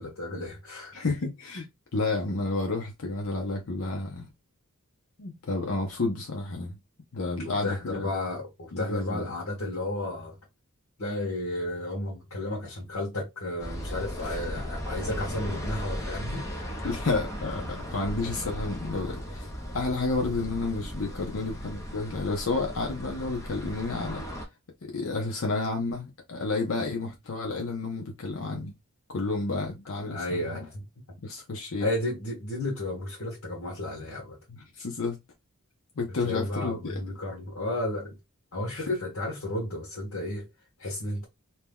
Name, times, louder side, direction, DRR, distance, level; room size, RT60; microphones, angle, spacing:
voice 1, 0.0-0.9 7.4-10.4 11.0-16.5 16.8-16.9 30.1-30.9 31.8-34.4 36.2-38.1 38.5-40.5 40.8-41.2, left 1 dB, 80° left, 1.2 m, -33 dB
voice 2, 0.9-1.7 1.9-4.3 5.2-6.8 7.1-8.1 8.7-9.3 14.2-14.4 16.8-24.2 24.8-28.8 29.1-30.7 31.2-31.9 34.5-35.2 36.0-37.0 38.7-38.9, left 3 dB, 65° left, 0.7 m, -31 dB
sound 1, 13.6-24.5, equal, 15° left, 0.7 m, -36 dB
2.8 x 2.3 x 3.4 m
head